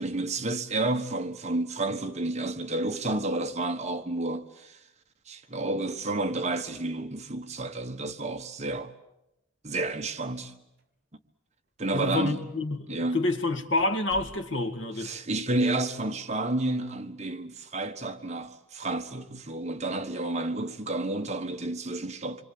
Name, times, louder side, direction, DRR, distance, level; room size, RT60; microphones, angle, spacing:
voice 1, 0.0-4.8 5.3-8.9 9.6-10.6 11.8-12.4 12.9-13.2 15.0-22.4, right 2 dB, 35° right, 1.4 m, -30 dB
sound 1, 9.9-10.5 10.8-10.9 11.6-11.7 12.5-12.7 13.1-13.2 13.8-14.9, right 1 dB, 55° right, 3.9 m, -50 dB
voice 2, 11.9-15.1, left 2 dB, 70° left, 2.0 m, -28 dB
27.0 x 24.0 x 8.7 m
head